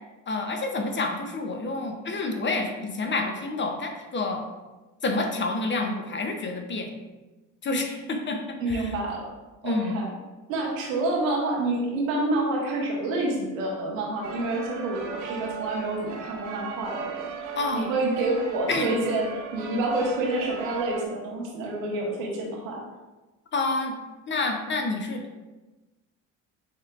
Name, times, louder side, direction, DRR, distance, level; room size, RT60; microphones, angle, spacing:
voice 1, 0.3-4.4 5.0-6.9 7.6-8.9 9.6-10.0 17.6-17.9 18.7-18.9 23.5-23.9 24.3-25.2, left 3 dB, 30° left, 4 dB, 0.7 m, -28 dB
voice 2, 8.6-9.2 9.6-10.1 10.5-17.3 17.7-22.8, right 2 dB, 80° right, -2 dB, 1.2 m, -28 dB
sound 1, 14.2-21.1, right 5 dB, 50° right, 0.8 m, -38 dB
6.4 x 3.2 x 2.4 m, 1.1 s
hypercardioid pair, 70°, 40 cm